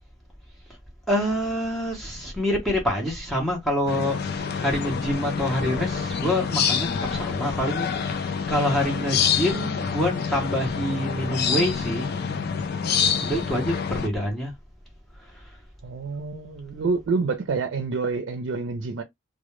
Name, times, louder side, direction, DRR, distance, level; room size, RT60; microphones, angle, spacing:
voice 1, 1.1-4.2 4.6-12.1 13.2-14.5 15.3-15.5, left 1 dB, ahead, 0.6 m, -26 dB
sound 1, 3.9-14.1, left 6 dB, 55° left, 0.3 m, -27 dB
voice 2, 15.8-19.0, right 4 dB, 80° right, 0.4 m, -27 dB
2.1 x 2.1 x 2.9 m
head